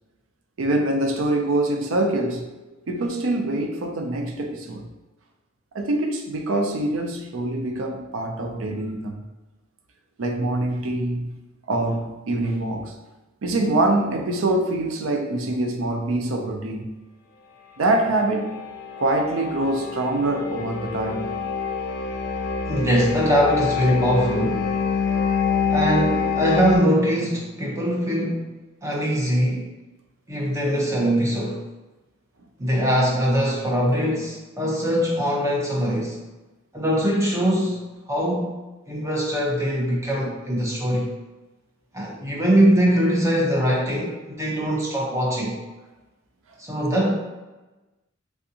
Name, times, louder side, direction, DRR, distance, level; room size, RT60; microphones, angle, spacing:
voice 1, 0.6-2.5 2.9-4.9 5.7-9.2 10.2-11.3 11.7-13.0 13.4-16.9 17.8-18.6 19.0-21.3, right 2 dB, 80° right, 4 dB, 0.5 m, -24 dB
sound 1, 18.2-26.8, left 5 dB, 55° left, 0.4 m, -26 dB
voice 2, 22.7-24.7 25.7-28.5 28.8-29.7 30.3-31.6 32.6-36.2 36.7-37.8 38.1-38.6 38.9-41.1 41.9-45.6 46.6-47.2, equal, 15° right, -3 dB, 0.7 m, -22 dB
3.5 x 2.6 x 2.7 m, 1.1 s
head